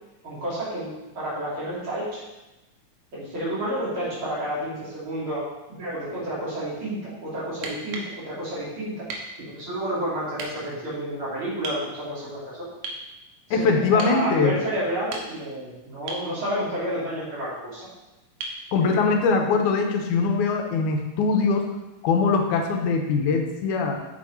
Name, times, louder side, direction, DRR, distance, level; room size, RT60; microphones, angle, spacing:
voice 1, 0.2-2.2 3.1-5.4 5.7-9.0 9.4-12.7 13.5-17.9 18.8-19.0, right 1 dB, 40° right, -8 dB, 3.9 m, -30 dB
sound 1, 7.6-8.2 9.1-9.3 10.4-10.5 11.6-11.8 12.8-13.1 14.0-14.2 14.9-15.5 16.1-16.3 18.4-18.6 20.5-20.6, right 3 dB, 85° right, 2.7 m, -35 dB
voice 2, 13.5-14.6 18.7-21.7 22.0-23.9, left 4 dB, 80° left, 3 dB, 2.4 m, -22 dB
8.9 x 6.4 x 4.3 m, 1.0 s
omnidirectional pair, 3.6 m